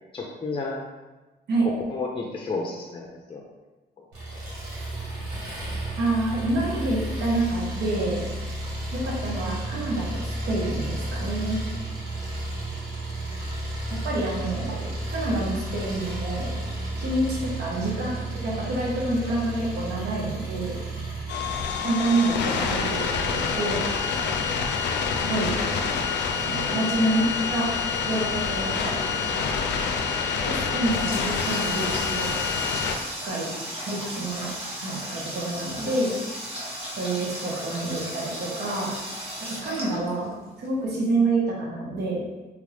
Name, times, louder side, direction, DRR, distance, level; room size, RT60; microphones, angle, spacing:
voice 1, 0.1-0.8 1.6-3.4 4.0-4.1 4.3-4.4, left 3 dB, 30° left, -1 dB, 0.5 m, -32 dB
Engine, 4.1-21.6, right 2 dB, 85° right, 1.3 m, -32 dB
voice 2, 6.0-8.2 8.9-11.6 13.9-16.6 16.9-18.2 18.4-20.8 21.8-23.8 25.2-25.5 26.4-27.7 28.1-29.7 30.5-32.4 33.2-33.5 33.9-34.5 34.8-36.1 37.0-38.9 39.6-42.2, right 2 dB, 70° right, -3 dB, 1.1 m, -27 dB
sound 1, 21.3-33.0, left 5 dB, 80° left, 0.4 m, -27 dB
Water tap faucet, 30.5-40.7, right 1 dB, 35° right, 1.1 m, -35 dB
3.4 x 2.4 x 3.3 m, 1.2 s
cardioid pair, 80°, 18 cm